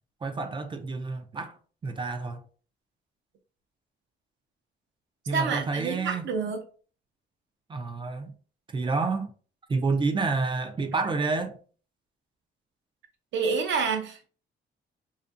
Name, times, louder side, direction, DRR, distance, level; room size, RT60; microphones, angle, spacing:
voice 1, 0.2-1.5 1.8-2.4 5.3-6.3 7.7-8.3 8.7-9.3 9.7-11.6, right 4 dB, 25° right, 0.4 m, -29 dB
voice 2, 5.3-6.6 13.3-14.3, right 5 dB, 70° right, 0.7 m, -28 dB
2.5 x 2.5 x 2.4 m
cardioid pair, 90°, 20 cm